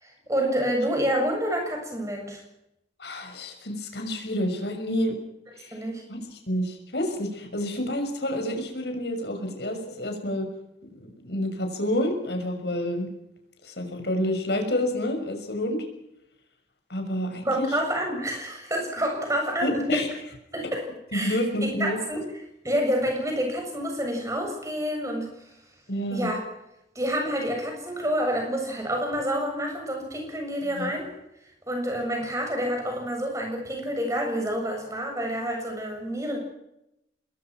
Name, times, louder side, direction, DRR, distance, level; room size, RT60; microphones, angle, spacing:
voice 1, 0.0-2.4 5.7-6.0 17.4-20.0 20.5-20.8 21.1-22.3 22.6-25.3 26.1-26.4 27.0-31.1 31.7-36.4, equal, 15° right, 3 dB, 7.4 m, -28 dB
voice 2, 3.0-5.1 5.6-5.8 6.1-10.5 10.9-13.1 13.6-15.8 16.9-17.7 19.6-20.1 21.1-22.0 25.9-26.3 30.8-30.9, left 1 dB, 65° left, 4 dB, 6.2 m, -29 dB
26.0 x 21.5 x 6.1 m, 0.85 s
head